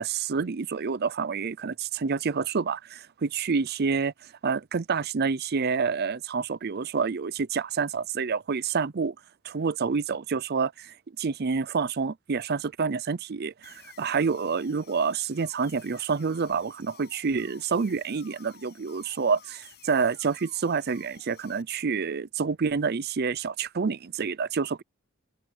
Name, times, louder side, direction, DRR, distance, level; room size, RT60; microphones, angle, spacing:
voice 1, 0.0-4.1 4.4-9.1 9.4-24.8, right 5 dB, 50° right, 0.5 m, -28 dB
sound 1, 13.6-21.6, left 8 dB, 50° left, 7.0 m, -53 dB
open air
head